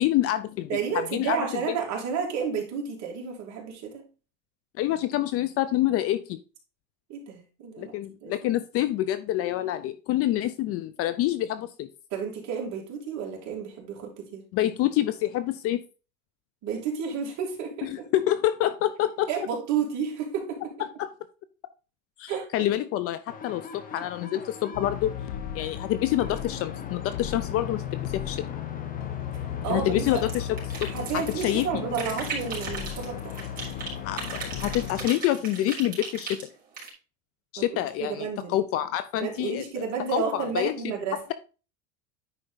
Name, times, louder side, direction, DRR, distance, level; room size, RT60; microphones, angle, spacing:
voice 1, 0.0-0.7 1.1-1.4 4.8-6.4 7.8-11.9 14.5-15.8 17.8-19.3 20.8-21.1 22.2-25.1 25.5-28.4 29.7-31.7 34.0-36.4 37.5-39.6 40.1-40.7 41.1-41.3, left 13 dB, 35° left, 13 dB, 0.5 m, -27 dB
voice 2, 0.7-4.1 7.1-7.9 8.2-8.3 12.1-14.4 16.6-18.0 19.3-20.7 22.3-22.7 29.6-30.2 30.9-33.4 37.6-38.6 39.2-41.2, right 6 dB, 45° right, 0 dB, 3.2 m, -31 dB
sound 1, 23.3-35.0, left 5 dB, 20° left, 1.2 m, -43 dB
sound 2, 24.7-35.1, left 10 dB, 75° left, 0.9 m, -35 dB
sound 3, 30.0-31.6 31.9-33.9 34.2-36.9, right 4 dB, 20° right, 3.9 m, -37 dB
9.9 x 4.5 x 4.0 m, 0.34 s
supercardioid pair, 140°, 40 cm